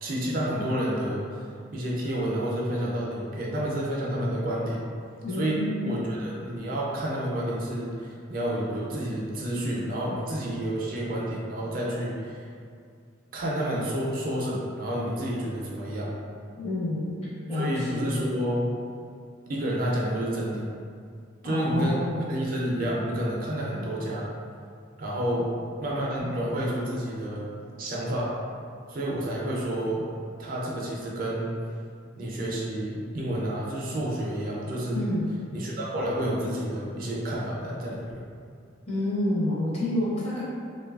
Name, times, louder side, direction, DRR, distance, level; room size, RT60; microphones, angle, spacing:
voice 1, 0.0-1.5 1.7-4.8 5.3-12.4 13.3-16.1 17.5-18.7 19.5-20.7 21.4-22.0 22.3-24.3 25.0-25.5 25.8-27.5 27.8-28.3 28.9-30.1 30.4-31.5 32.2-35.0 35.5-38.2, right 1 dB, 45° right, -4 dB, 0.4 m, -29 dB
voice 2, 5.2-6.1 16.6-17.1 17.5-18.1 21.4-22.4 34.9-35.2 38.9-40.4, left 1 dB, 30° left, -8 dB, 0.6 m, -28 dB
2.7 x 2.3 x 2.3 m, 2.3 s
head